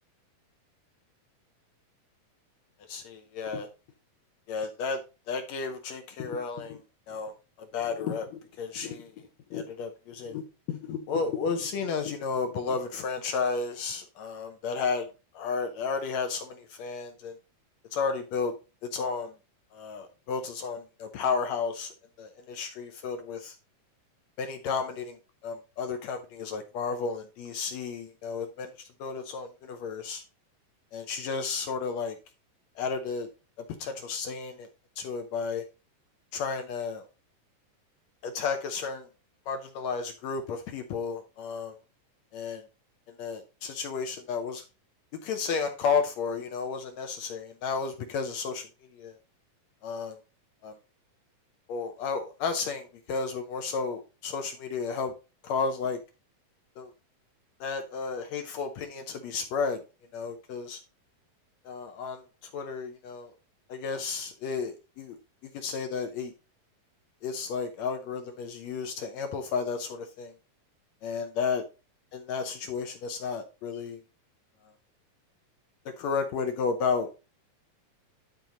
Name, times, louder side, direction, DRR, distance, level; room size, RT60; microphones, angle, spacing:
voice 1, 2.9-3.7 4.5-5.0 5.3-7.3 7.6-15.1 15.3-17.4 17.9-18.5 18.9-19.3 19.7-23.6 24.4-25.2 25.4-30.2 30.9-32.2 32.8-33.3 33.6-34.7 35.0-35.6 36.3-37.1 38.2-39.1 39.5-41.8 42.3-42.6 43.2-44.6 45.2-49.2 49.8-50.2 50.6-50.8 51.7-55.1 55.4-56.0 56.8-56.9 57.6-59.8 60.1-60.8 61.7-63.3 63.7-65.2 65.5-66.3 67.2-70.3 71.0-71.6 72.1-74.0 75.9-77.2, left 5 dB, 75° left, 1.6 m, -32 dB
10.5 x 4.5 x 3.8 m
omnidirectional pair, 4.0 m